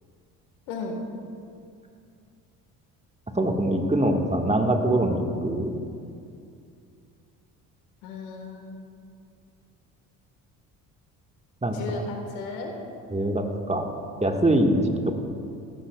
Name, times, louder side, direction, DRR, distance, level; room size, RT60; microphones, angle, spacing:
voice 1, 0.7-1.0 8.0-8.9 11.7-12.7, left 3 dB, 75° left, 2 dB, 1.6 m, -35 dB
voice 2, 3.3-5.7 11.6-12.0 13.1-13.8 14.2-15.1, right 1 dB, 15° right, 3 dB, 1.5 m, -23 dB
15.5 x 14.5 x 2.3 m, 2.4 s
hypercardioid pair, 55°, 45 cm